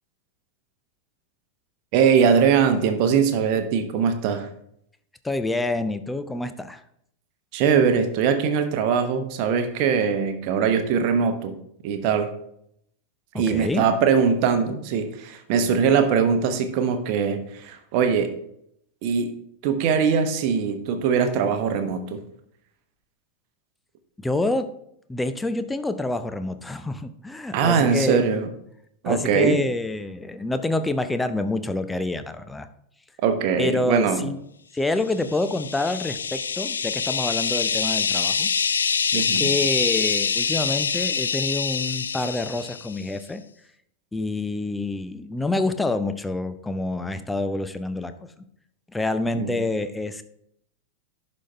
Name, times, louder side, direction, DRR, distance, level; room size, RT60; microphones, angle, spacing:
voice 1, 1.9-4.5 7.5-11.5 11.8-12.3 13.3-18.3 19.0-19.3 19.6-22.2 27.5-28.5 29.0-29.6 33.2-34.3 39.1-39.5 49.3-49.6, right 6 dB, 45° right, 7 dB, 0.9 m, -21 dB
voice 2, 5.2-6.8 13.3-13.8 24.2-24.7 25.1-28.2 29.0-32.7 33.6-34.4 34.7-38.5 39.1-43.4 44.1-48.1 48.9-50.2, left 2 dB, 10° left, 10 dB, 0.5 m, -27 dB
sound 1, 35.2-43.0, left 6 dB, 70° left, 0.3 m, -25 dB
11.0 x 4.2 x 3.3 m, 0.72 s
figure-of-eight pair, 90°, 0 cm